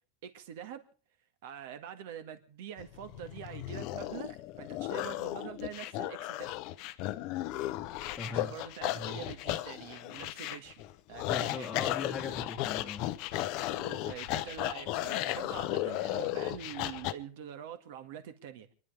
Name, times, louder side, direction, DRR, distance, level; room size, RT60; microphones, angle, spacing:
voice 1, 0.2-0.8 1.4-6.5 8.3-10.8 11.1-11.7 13.8-18.7, right 9 dB, 60° right, 8 dB, 1.9 m, -45 dB
sound 1, 2.8-17.1, left 15 dB, 40° left, 0.7 m, -35 dB
voice 2, 8.2-8.5 8.9-9.2 11.3-13.1, left 5 dB, 15° left, -3 dB, 1.4 m, -39 dB
29.0 x 11.5 x 3.5 m, 0.42 s
supercardioid pair, 175°, 0 cm